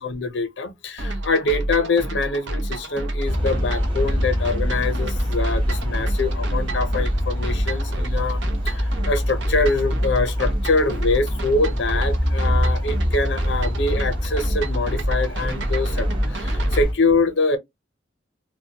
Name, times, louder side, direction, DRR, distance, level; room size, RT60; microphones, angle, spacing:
voice 1, 0.0-8.4 8.6-17.6, left 3 dB, 75° left, 0.6 m, -24 dB
sound 1, 1.0-16.8, right 1 dB, 70° right, 0.6 m, -29 dB
sound 2, 3.2-16.9, equal, 25° right, 0.7 m, -25 dB
2.1 x 2.1 x 2.7 m
head